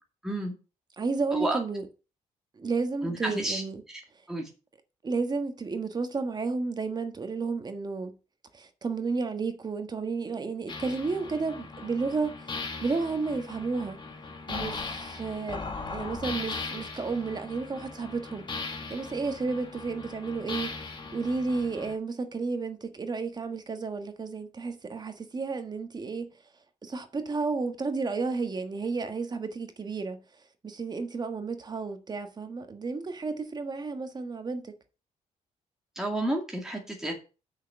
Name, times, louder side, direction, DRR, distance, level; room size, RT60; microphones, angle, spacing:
voice 1, 0.2-0.5 1.3-1.6 3.0-3.6 3.9-4.0 4.3-4.5 36.0-37.1, right 1 dB, 5° right, 2.2 m, -31 dB
voice 2, 1.0-1.8 2.6-3.8 5.0-8.1 8.5-12.5 12.8-14.0 14.5-15.6 15.9-20.7 21.1-26.3 26.8-30.2 30.6-34.7, right 4 dB, 30° right, 1.4 m, -32 dB
sound 1, 10.7-21.9, left 4 dB, 35° left, 1.9 m, -39 dB
6.3 x 6.2 x 7.0 m
cardioid pair, 110°, 13 cm